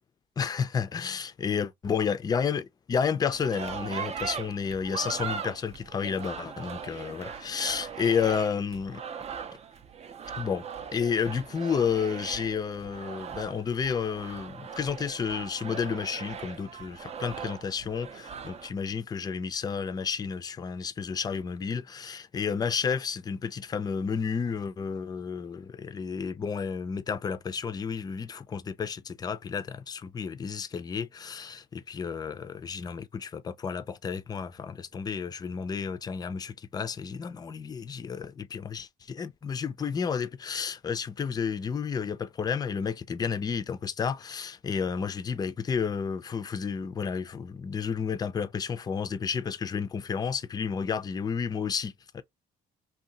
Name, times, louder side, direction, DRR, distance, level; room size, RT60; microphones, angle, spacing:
voice 1, 0.4-9.0 10.4-10.6 10.9-52.2, left 6 dB, 25° left, 0.4 m, -31 dB
sound 1, 3.3-18.7, right 7 dB, 40° right, 0.5 m, -39 dB
2.7 x 2.3 x 3.8 m
cardioid pair, 110°, 17 cm